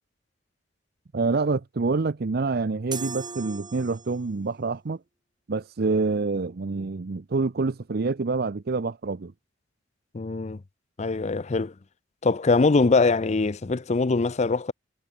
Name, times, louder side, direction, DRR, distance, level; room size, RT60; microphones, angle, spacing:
voice 1, 1.1-5.0 5.5-9.3, right 3 dB, 55° right, 0.6 m, -27 dB
sound 1, 2.9-4.4, right 5 dB, 25° right, 3.6 m, -37 dB
voice 2, 10.1-10.6 11.0-11.7 12.2-14.7, left 3 dB, 40° left, 0.5 m, -22 dB
head